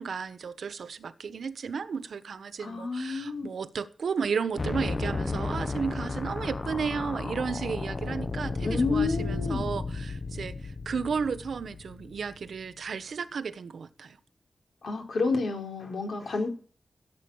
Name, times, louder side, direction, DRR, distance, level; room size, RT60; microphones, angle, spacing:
voice 1, 0.0-14.2, right 6 dB, 80° right, 1.2 m, -33 dB
voice 2, 2.6-3.5 8.6-9.7 14.8-16.5, left 4 dB, 75° left, 4.2 m, -29 dB
sound 1, 4.6-12.6, left 3 dB, 35° left, 0.9 m, -33 dB
16.0 x 8.1 x 6.4 m
wide cardioid pair, 115°, 0 cm